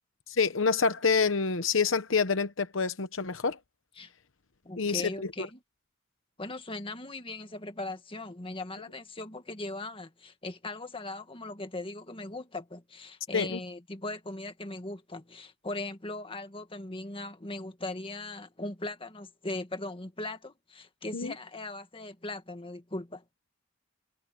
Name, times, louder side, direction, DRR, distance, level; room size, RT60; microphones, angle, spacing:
voice 1, 0.3-3.6 4.8-5.1 13.3-13.6 21.1-21.3, left 5 dB, 70° left, 1.0 m, -27 dB
voice 2, 4.7-5.6 6.4-23.2, left 2 dB, 25° left, 1.8 m, -39 dB
head